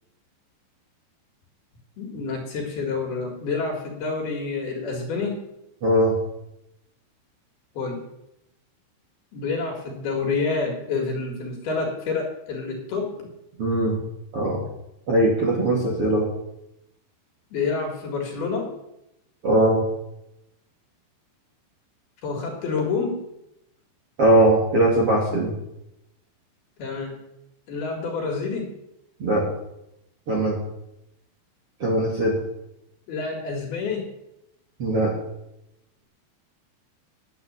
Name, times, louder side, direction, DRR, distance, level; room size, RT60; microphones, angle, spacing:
voice 1, 2.0-5.4 7.8-8.1 9.3-13.3 17.5-18.7 22.2-23.2 26.8-27.2 27.7-28.8 33.1-34.1, left 4 dB, 60° left, 1 dB, 3.8 m, -28 dB
voice 2, 5.8-6.1 13.6-14.0 14.3-14.6 15.1-16.3 19.4-19.8 24.2-25.5 29.2-29.4 30.3-30.6 31.8-32.4 34.8-35.1, right 1 dB, 35° right, -3 dB, 2.6 m, -20 dB
10.5 x 8.7 x 9.0 m, 0.85 s
omnidirectional pair, 5.7 m